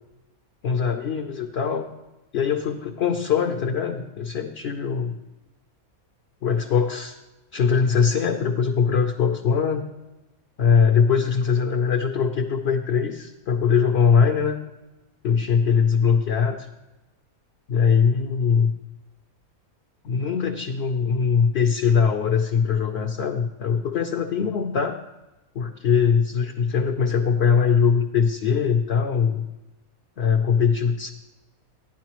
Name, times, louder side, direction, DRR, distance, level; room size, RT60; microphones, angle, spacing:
voice 1, 0.6-1.9 2.3-5.2 6.4-7.2 7.5-9.8 10.6-14.6 15.2-16.7 17.7-18.7 20.0-25.0 25.5-29.4 30.2-31.1, left 6 dB, 55° left, 4 dB, 0.8 m, -21 dB
13.0 x 10.0 x 3.0 m, 1.0 s
omnidirectional pair, 1.5 m